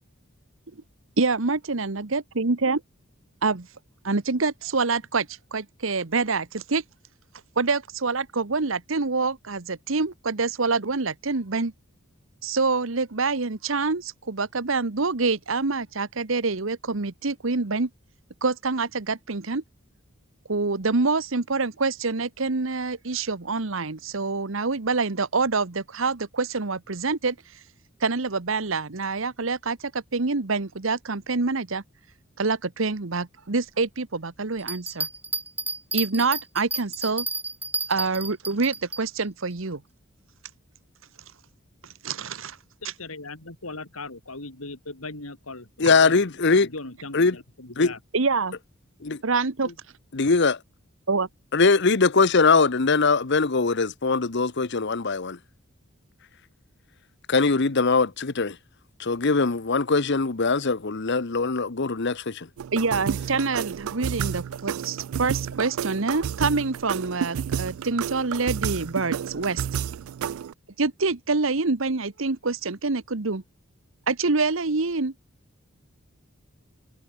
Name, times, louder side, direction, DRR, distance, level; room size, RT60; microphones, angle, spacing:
voice 1, 1.2-2.8 3.4-3.7 4.0-6.8 7.6-11.7 12.4-17.9 18.4-19.6 20.5-27.3 28.0-31.8 32.4-35.1 35.9-37.3 37.9-39.8 42.0-42.6 48.1-48.5 49.2-49.7 51.1-51.3 62.7-69.6 70.8-73.4 74.1-75.1, right 3 dB, 65° right, 1.2 m, -26 dB
Bell, 34.6-39.0 39.5-39.6, right 3 dB, 10° right, 2.1 m, -31 dB
voice 2, 42.8-46.2 46.6-48.0, left 3 dB, 80° left, 4.2 m, -39 dB
voice 3, 45.8-46.7 47.1-47.4 47.8-47.9 49.0-49.2 50.1-50.6 51.5-55.4 57.3-58.6 59.0-62.5, left 4 dB, 55° left, 1.0 m, -21 dB
sound 1, 62.6-70.5, right 8 dB, 80° right, 0.3 m, -31 dB
head